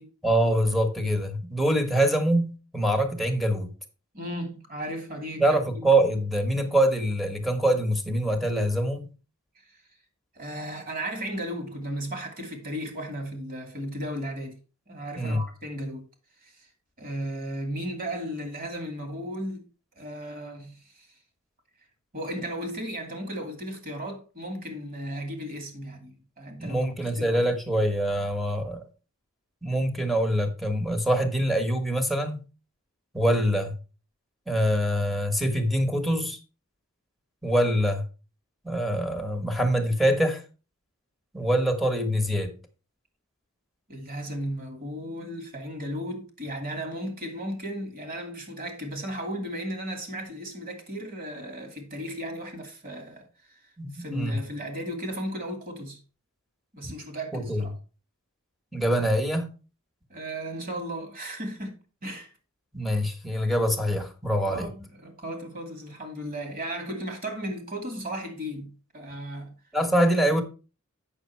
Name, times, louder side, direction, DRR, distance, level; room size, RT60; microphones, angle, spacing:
voice 1, 0.2-3.7 5.4-9.1 15.2-15.4 26.6-28.8 29.6-32.4 33.1-33.7 34.5-36.4 37.4-38.0 38.6-40.4 41.3-42.5 53.8-54.4 56.8-56.9 57.3-57.7 58.7-59.5 62.7-64.7 69.7-70.4, right 1 dB, ahead, 1.3 m, -24 dB
voice 2, 4.1-5.8 10.3-14.6 14.9-16.1 16.4-16.7 17.0-19.6 20.0-21.1 22.1-27.5 43.9-53.6 53.9-56.0 56.7-57.7 60.1-62.3 64.4-69.5, equal, 45° right, 2.6 m, -35 dB
8.6 x 6.4 x 4.5 m
head